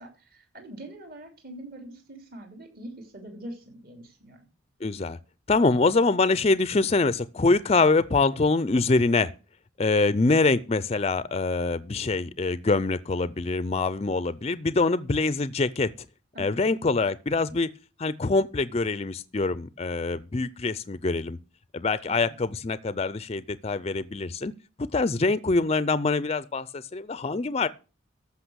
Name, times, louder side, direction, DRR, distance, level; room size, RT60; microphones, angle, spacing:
voice 1, 0.0-4.4 16.3-16.6 22.1-22.4, right 1 dB, 45° right, 3.1 m, -43 dB
voice 2, 4.8-5.2 5.5-9.3 9.8-15.9 16.4-17.7 18.0-21.4 21.7-24.5 24.9-27.7, left 3 dB, 30° left, 0.5 m, -24 dB
14.0 x 5.9 x 6.2 m
head